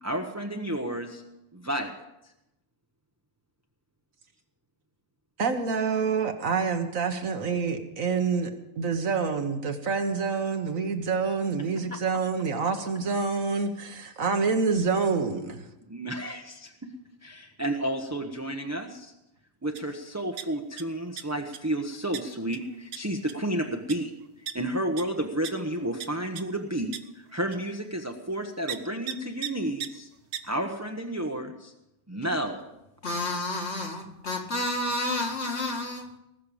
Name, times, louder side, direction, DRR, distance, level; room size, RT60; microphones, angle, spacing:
voice 1, 0.0-1.2 1.5-2.3 11.9-12.0 15.9-16.7 17.2-19.1 19.6-24.1 24.4-30.1 30.4-31.7 32.1-32.7, right 1 dB, 15° right, 0.9 m, -31 dB
voice 2, 5.4-8.5 8.8-15.7, right 5 dB, 65° right, 1.6 m, -27 dB
sound 1, 19.7-19.9 20.2-20.8 21.2-21.6 22.1-22.2 22.5-22.6 22.9-23.0 23.3-23.5 23.9-24.0 24.5-24.6 25.0-25.1 25.4-25.5 26.0-26.1 26.4-26.5 26.9-27.0 27.5-27.6 28.7-28.8 29.1-29.2 29.4-29.5 29.8-29.9 30.3-30.4, right 9 dB, 90° right, 1.4 m, -34 dB
voice 3, 33.0-36.2, left 1 dB, 50° left, 2.3 m, -30 dB
19.5 x 6.7 x 8.8 m
omnidirectional pair, 1.6 m